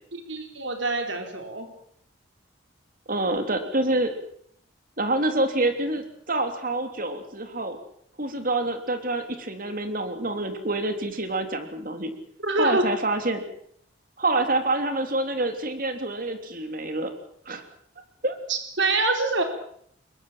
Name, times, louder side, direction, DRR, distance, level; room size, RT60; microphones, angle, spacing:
voice 1, 0.1-1.7 12.4-12.8 18.5-19.4, right 3 dB, 65° right, 5 dB, 4.2 m, -25 dB
voice 2, 3.1-4.1 5.0-7.8 8.2-12.1 12.6-13.4 14.2-17.1 17.4-17.6 18.2-18.4, right 2 dB, 45° right, 7 dB, 3.3 m, -27 dB
22.0 x 21.5 x 7.6 m, 0.66 s
head